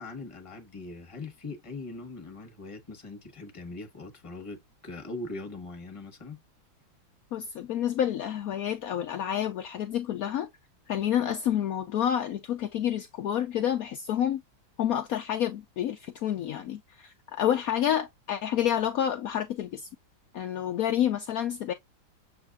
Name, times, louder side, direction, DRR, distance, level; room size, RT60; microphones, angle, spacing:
voice 1, 0.0-6.4, left 3 dB, 20° left, 1.0 m, -41 dB
voice 2, 7.3-10.5 10.9-14.4 14.8-19.9 20.3-21.7, left 10 dB, 80° left, 0.8 m, -29 dB
7.3 x 2.9 x 2.3 m
omnidirectional pair, 2.2 m